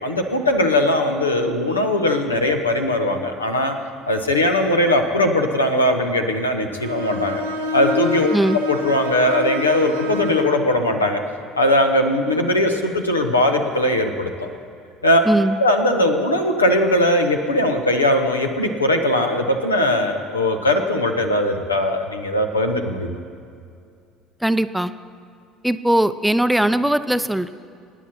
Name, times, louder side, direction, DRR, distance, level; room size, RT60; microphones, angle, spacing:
voice 1, 0.0-3.7 4.1-7.4 7.7-8.3 8.7-11.2 11.5-14.5 15.0-15.2 15.5-23.2, left 1 dB, 85° left, 4 dB, 1.0 m, -19 dB
Bowed string instrument, 6.8-10.6, left 3 dB, 80° right, 1.4 m, -27 dB
voice 2, 15.3-15.6 24.4-24.9 25.6-27.5, right 1 dB, 5° right, 12 dB, 0.5 m, -19 dB
26.0 x 10.0 x 4.3 m, 2.4 s
figure-of-eight pair, 60°, 0 cm